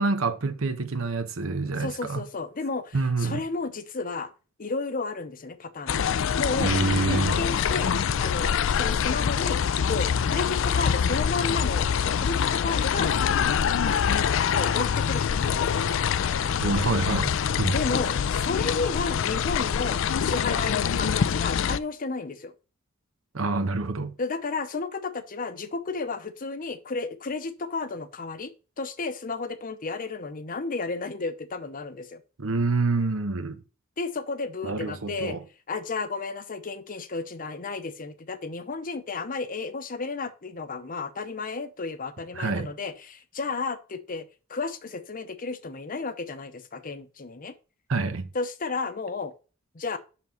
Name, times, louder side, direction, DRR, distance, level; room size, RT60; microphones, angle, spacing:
voice 1, 0.0-2.2 2.9-3.4 6.6-7.4 16.6-17.3 17.6-17.7 23.3-24.1 32.4-33.6 34.6-35.4 42.3-42.7 47.9-48.3, right 3 dB, 80° right, 0.9 m, -27 dB
voice 2, 1.8-4.3 4.6-6.1 6.4-6.7 7.1-7.9 8.2-16.8 17.7-22.5 24.2-32.2 34.0-35.4 35.7-47.5 48.3-49.3 49.7-50.0, left 4 dB, 45° left, 0.7 m, -33 dB
sound 1, 5.9-21.8, left 7 dB, 65° left, 0.4 m, -25 dB
6.0 x 5.8 x 4.3 m
head